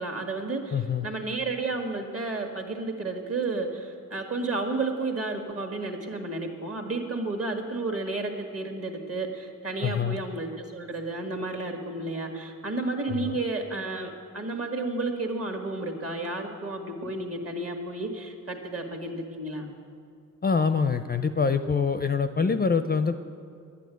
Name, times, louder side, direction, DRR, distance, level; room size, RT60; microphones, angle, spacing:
voice 1, 0.0-19.7, right 2 dB, 45° right, 4 dB, 1.6 m, -32 dB
voice 2, 0.7-1.1 9.8-10.2 13.1-13.3 20.4-23.2, left 5 dB, 30° left, 9 dB, 0.4 m, -25 dB
11.5 x 8.5 x 9.1 m, 2.4 s
wide cardioid pair, 130°, 33 cm